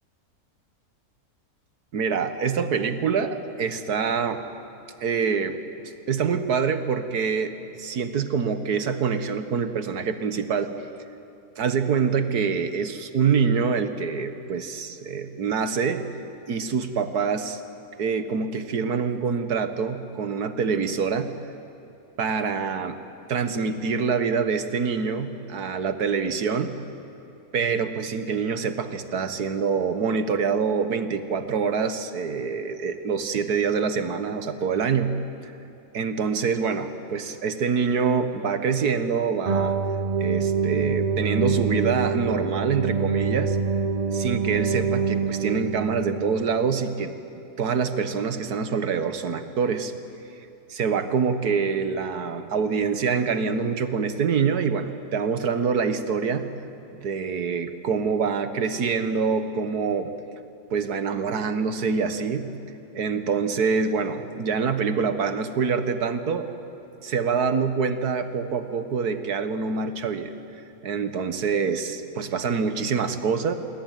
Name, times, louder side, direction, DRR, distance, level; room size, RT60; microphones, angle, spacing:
voice 1, 1.9-4.4 5.0-5.6 6.1-7.5 7.8-10.7 11.6-16.1 16.5-17.6 18.0-21.3 22.2-23.0 23.3-26.7 27.5-35.2 35.4-35.5 35.9-39.7 40.2-43.6 44.1-49.9 50.7-56.5 57.0-60.1 60.7-62.5 62.9-66.5 67.0-70.3 70.8-73.5, right 5 dB, 85° right, 10 dB, 1.9 m, -25 dB
sound 1, 39.4-46.5, right 5 dB, 35° right, 0.7 m, -25 dB
27.0 x 23.5 x 9.3 m, 2.8 s
omnidirectional pair, 1.6 m